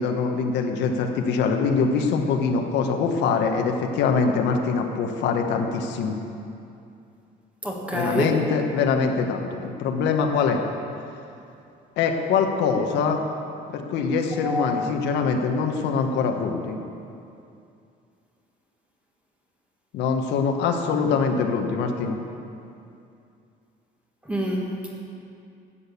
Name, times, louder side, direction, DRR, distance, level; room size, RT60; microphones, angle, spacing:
voice 1, 0.0-6.1 7.9-10.6 12.0-13.2 13.7-16.8 19.9-22.2, left 5 dB, 85° left, 3 dB, 1.3 m, -23 dB
voice 2, 7.6-8.4 14.3-14.7 24.2-24.9, equal, 5° right, -2 dB, 1.7 m, -27 dB
12.5 x 8.8 x 7.2 m, 2.6 s
cardioid pair, 170°, 18 cm